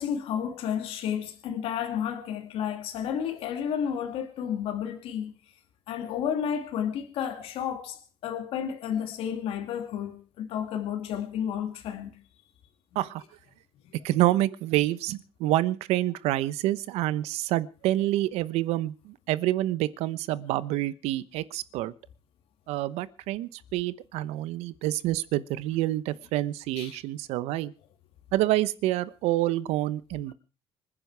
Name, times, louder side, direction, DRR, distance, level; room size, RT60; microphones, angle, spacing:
voice 1, 0.0-5.3 5.9-12.1 26.8-27.0, left 8 dB, 65° left, 2.4 m, -31 dB
voice 2, 14.0-21.9 22.7-27.7 28.3-30.3, right 15 dB, 85° right, 1.0 m, -27 dB
26.0 x 9.9 x 4.7 m
cardioid pair, 160°, 11 cm